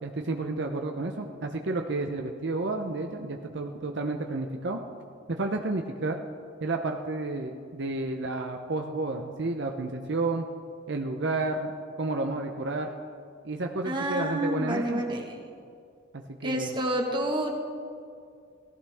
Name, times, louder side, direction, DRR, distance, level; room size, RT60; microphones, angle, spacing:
voice 1, 0.0-4.8 5.3-6.2 6.6-10.5 10.9-11.7 12.0-13.0 13.4-15.0 16.1-16.8, right 2 dB, 65° right, 3 dB, 0.8 m, -31 dB
voice 2, 13.8-15.2 16.4-17.6, right 1 dB, 25° right, 1 dB, 1.7 m, -29 dB
18.0 x 15.0 x 3.6 m, 2.3 s
head